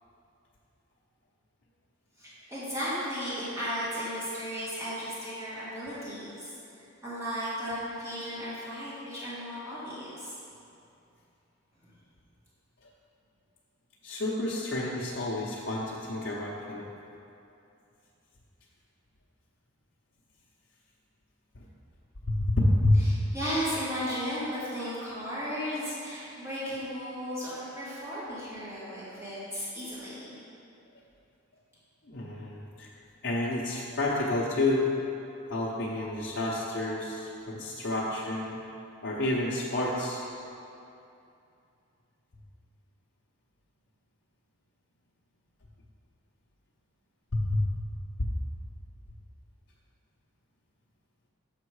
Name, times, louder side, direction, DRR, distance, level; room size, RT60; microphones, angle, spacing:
voice 1, 2.2-10.3 23.3-30.3, equal, 15° right, -10 dB, 1.7 m, -35 dB
voice 2, 14.0-16.9 22.3-23.0 32.1-32.9 33.2-34.9 35.5-38.6 39.0-40.2 47.3-47.6, left 1 dB, 55° left, -7 dB, 0.8 m, -29 dB
6.7 x 5.3 x 4.8 m, 2.6 s
head